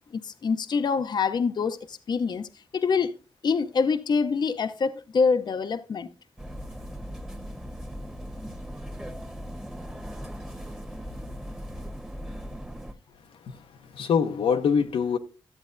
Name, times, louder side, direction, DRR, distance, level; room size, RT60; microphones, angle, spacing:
voice 1, 0.1-3.1 3.4-6.1, left 5 dB, 50° left, 0.6 m, -25 dB
sound 1, 6.4-12.9, equal, 5° right, 1.2 m, -38 dB
voice 2, 13.4-15.2, left 6 dB, 80° left, 0.8 m, -25 dB
13.5 x 8.0 x 2.6 m
cardioid pair, 75°, 9 cm